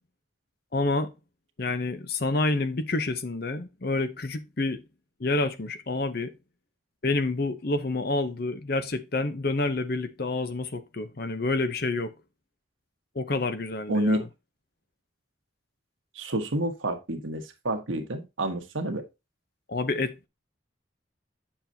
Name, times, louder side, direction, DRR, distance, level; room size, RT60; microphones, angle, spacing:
voice 1, 0.7-1.1 1.6-4.8 5.2-6.3 7.0-12.1 13.1-14.2 19.7-20.3, left 2 dB, 50° left, 0.7 m, -28 dB
voice 2, 13.9-14.2 16.1-19.0, right 1 dB, 80° right, 1.4 m, -29 dB
7.5 x 7.0 x 2.7 m
head